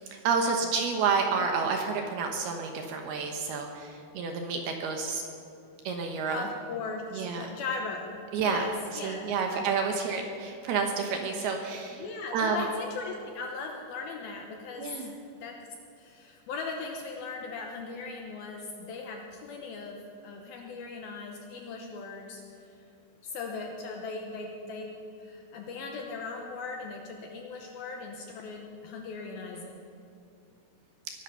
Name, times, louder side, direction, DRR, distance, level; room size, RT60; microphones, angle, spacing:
voice 1, 0.1-5.2 5.8-6.5 7.1-7.5 8.3-8.6 8.9-12.0 12.3-12.6 14.8-15.1, right 5 dB, 70° right, 3 dB, 2.7 m, -29 dB
voice 2, 6.3-10.2 12.0-15.1 15.4-15.6 16.0-22.4 23.2-24.9 25.2-29.8, left 4 dB, 70° left, 2 dB, 2.4 m, -38 dB
21.5 x 12.0 x 5.6 m, 2.7 s
omnidirectional pair, 5.4 m